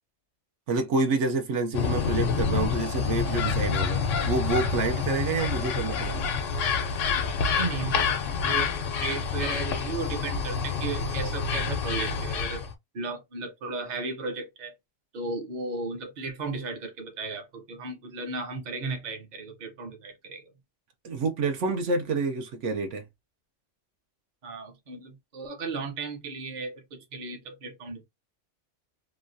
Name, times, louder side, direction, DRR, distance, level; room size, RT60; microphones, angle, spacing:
voice 1, 0.7-6.3 21.0-23.0, right 3 dB, 75° right, 1.0 m, -28 dB
sound 1, 1.7-12.7, left 5 dB, 85° left, 1.0 m, -28 dB
voice 2, 7.5-12.7 12.9-14.7 15.1-20.4 24.4-28.0, right 3 dB, 40° right, 0.8 m, -35 dB
3.0 x 2.3 x 2.5 m
omnidirectional pair, 1.3 m